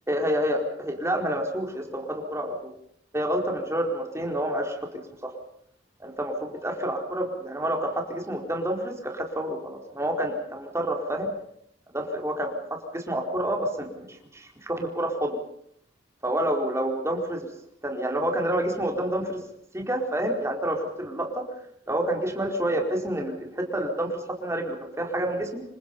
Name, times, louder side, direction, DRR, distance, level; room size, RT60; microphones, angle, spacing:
voice 1, 0.1-2.6 3.1-5.3 6.0-11.3 11.9-12.6 12.9-15.4 16.2-17.5 17.8-19.4 19.7-21.5 21.9-25.6, right 1 dB, 15° right, 2 dB, 4.7 m, -28 dB
27.5 x 25.0 x 5.6 m, 0.70 s
head